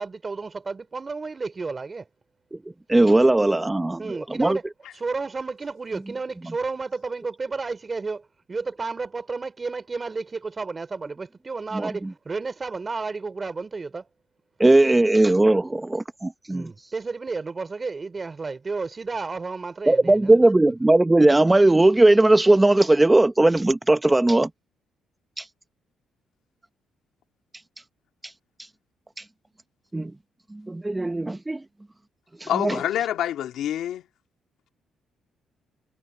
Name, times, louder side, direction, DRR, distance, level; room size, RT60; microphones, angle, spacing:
voice 1, 0.0-2.1 4.0-4.6 4.9-14.1 16.5-20.4, right 4 dB, 30° right, 3.1 m, -32 dB
voice 2, 2.9-4.6 6.5-6.6 11.7-12.1 14.6-16.7 19.9-24.5 25.4-25.5 29.9-30.1 30.5-31.6 32.4-32.8, right 2 dB, 15° right, 1.2 m, -18 dB
voice 3, 32.5-34.0, left 11 dB, 80° left, 2.5 m, -26 dB
cardioid pair, 90°, 0 cm